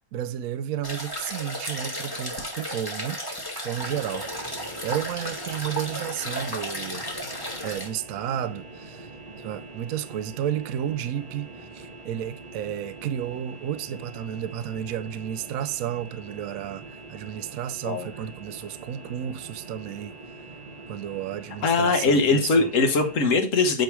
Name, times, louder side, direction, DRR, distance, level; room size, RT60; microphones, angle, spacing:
voice 1, 0.1-4.3 4.8-7.1 7.6-9.1 9.4-20.1 20.9-22.7, right 10 dB, 70° right, 0.8 m, -32 dB
sound 1, 0.8-7.9, equal, 15° left, 1.6 m, -34 dB
sound 2, 3.7-23.2, right 2 dB, 30° right, 0.7 m, -44 dB
voice 2, 21.6-23.8, left 3 dB, 50° left, 1.3 m, -21 dB
9.0 x 3.3 x 4.7 m
omnidirectional pair, 1.9 m